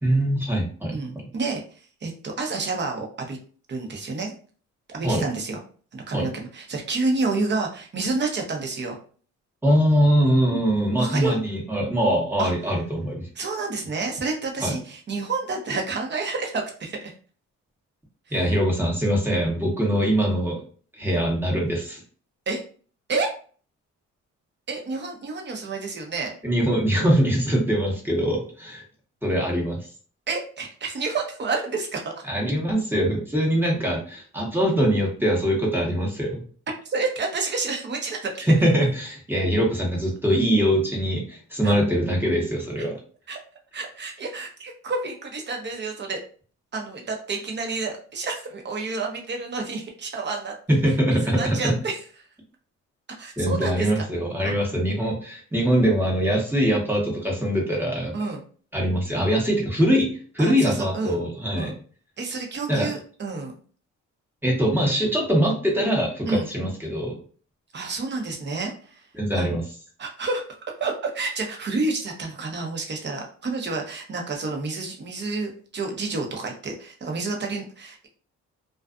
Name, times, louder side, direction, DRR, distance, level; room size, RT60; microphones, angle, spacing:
voice 1, 0.0-1.3 5.0-5.3 6.1-6.3 9.6-13.2 14.6-14.8 18.3-20.6 21.0-22.0 26.4-28.8 29.2-29.8 32.3-36.4 38.4-43.0 50.7-51.7 53.4-58.3 58.7-60.1 60.3-61.7 62.7-62.9 64.4-67.2 69.1-69.6, equal, 5° right, -2 dB, 0.9 m, -23 dB
voice 2, 0.9-1.6 2.0-3.4 3.7-4.4 4.9-5.6 5.9-9.0 11.0-11.4 12.4-12.5 13.4-17.1 22.5-22.6 23.1-23.3 24.7-26.3 30.3-32.2 36.8-38.5 41.6-41.7 43.3-43.4 43.7-46.2 46.7-50.5 51.1-52.0 53.2-54.0 54.4-54.5 58.1-58.4 60.4-61.2 61.5-61.8 62.2-63.5 66.3-66.5 67.7-69.0 69.4-69.5 70.0-70.4 70.8-78.1, right 3 dB, 35° right, 2 dB, 0.7 m, -29 dB
2.4 x 2.3 x 2.4 m, 0.42 s
cardioid pair, 90°, 30 cm